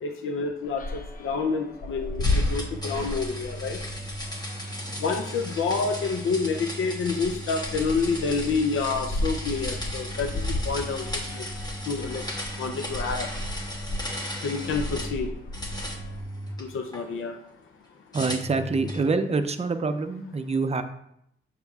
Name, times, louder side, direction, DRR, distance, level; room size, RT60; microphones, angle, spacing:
voice 1, 0.0-3.8 5.0-11.1 11.3-11.5 11.9-12.2 12.6-13.3 14.4-15.3 16.6-17.3, left 4 dB, 80° left, 5 dB, 0.5 m, -28 dB
sound 1, 0.6-16.2, left 2 dB, 40° left, 0.7 m, -34 dB
sound 2, 2.2-15.2 15.5-17.0 18.1-19.1, equal, 20° left, 1.1 m, -35 dB
voice 2, 18.1-20.8, right 4 dB, 30° right, 8 dB, 0.5 m, -26 dB
7.0 x 6.4 x 2.4 m, 0.75 s
wide cardioid pair, 110°, 21 cm